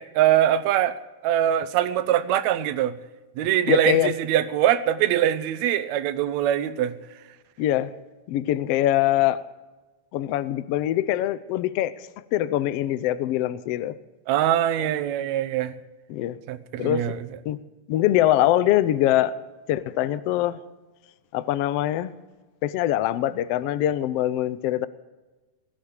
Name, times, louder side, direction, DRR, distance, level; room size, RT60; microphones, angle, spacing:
voice 1, 0.0-3.0 3.4-7.0 14.3-15.7 16.5-17.2, right 11 dB, 70° right, 1.9 m, -23 dB
voice 2, 3.7-4.1 7.6-7.9 8.3-9.4 10.1-12.0 12.3-14.0 14.8-14.9 16.1-16.4 16.8-17.2 17.4-17.6 17.9-19.4 19.7-20.6 21.3-22.1 22.6-24.9, left 13 dB, 90° left, 1.3 m, -23 dB
18.0 x 12.0 x 6.6 m
omnidirectional pair, 3.7 m